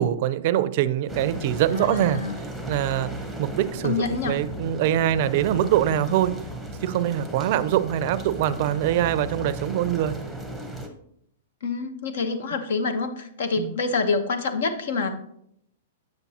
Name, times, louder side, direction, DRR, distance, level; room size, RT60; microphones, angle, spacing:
voice 1, 0.0-2.2 2.7-3.1 3.4-3.9 4.3-6.3 6.8-10.2 13.6-13.7, right 12 dB, 50° right, 15 dB, 0.4 m, -23 dB
sound 1, 1.1-10.9, equal, 5° left, 0.9 m, -36 dB
voice 2, 1.7-2.4 3.8-4.4 11.6-15.1, left 4 dB, 75° left, 9 dB, 0.9 m, -27 dB
7.9 x 7.0 x 2.8 m, 0.71 s
hypercardioid pair, 140°, 0 cm